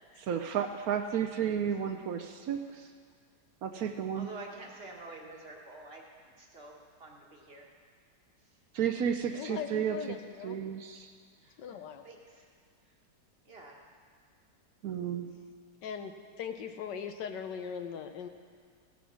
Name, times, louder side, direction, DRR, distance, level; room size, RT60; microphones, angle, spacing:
voice 1, 0.2-2.9 3.6-4.3 8.7-10.2 10.4-11.1 14.8-15.3, right 8 dB, 65° right, 5 dB, 1.0 m, -32 dB
voice 2, 4.1-6.0 6.4-7.7 11.4-11.8 12.0-12.4 13.4-13.8, right 3 dB, 35° right, -1 dB, 1.4 m, -48 dB
voice 3, 9.3-10.6 11.6-12.0 15.8-16.1 16.4-18.3, left 7 dB, 85° left, 7 dB, 1.5 m, -39 dB
16.5 x 7.1 x 6.1 m, 2.1 s
omnidirectional pair, 1.8 m